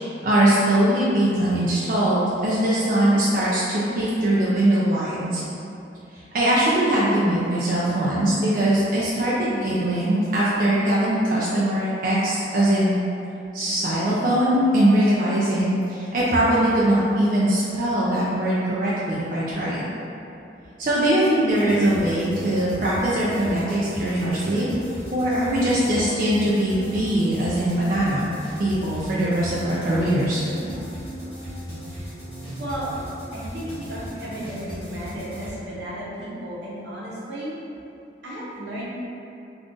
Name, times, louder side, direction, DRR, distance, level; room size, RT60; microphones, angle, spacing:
voice 1, 0.2-5.4 6.3-13.0 13.5-19.8 20.8-24.7 25.1-28.3 28.6-30.4, right 1 dB, 50° right, -8 dB, 0.4 m, -21 dB
sound 1, 21.5-35.5, equal, 25° left, 1.0 m, -36 dB
voice 2, 32.6-32.9 33.3-37.6 38.2-38.9, equal, 85° right, -7 dB, 0.8 m, -34 dB
2.5 x 2.4 x 3.7 m, 2.8 s
head